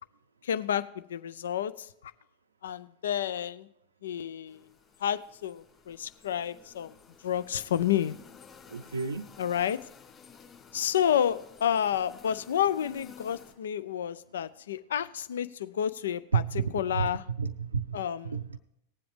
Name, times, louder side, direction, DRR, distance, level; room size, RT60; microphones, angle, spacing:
voice 1, 0.4-0.8 1.1-1.9 2.6-3.7 4.0-4.6 5.0-6.9 7.2-8.2 9.4-9.8 10.7-16.4 16.7-17.2 17.9-18.4, left 9 dB, 60° left, 14 dB, 0.4 m, -30 dB
sound 1, 4.5-13.5, left 7 dB, 25° left, 3.8 m, -53 dB
voice 2, 8.7-9.3 16.3-18.6, right 6 dB, 75° right, 8 dB, 0.5 m, -31 dB
19.0 x 7.7 x 3.3 m, 0.81 s
figure-of-eight pair, 90°, 0 cm